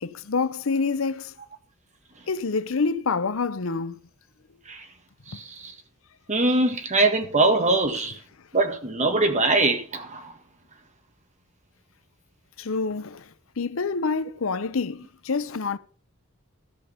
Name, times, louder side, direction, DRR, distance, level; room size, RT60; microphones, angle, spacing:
voice 1, 0.0-1.3 2.3-3.9 12.6-13.2 13.6-15.8, left 4 dB, 75° left, 0.7 m, -27 dB
voice 2, 5.3-5.7 6.3-8.2 8.5-10.3, right 2 dB, 35° right, 1.7 m, -22 dB
13.5 x 5.1 x 7.1 m
head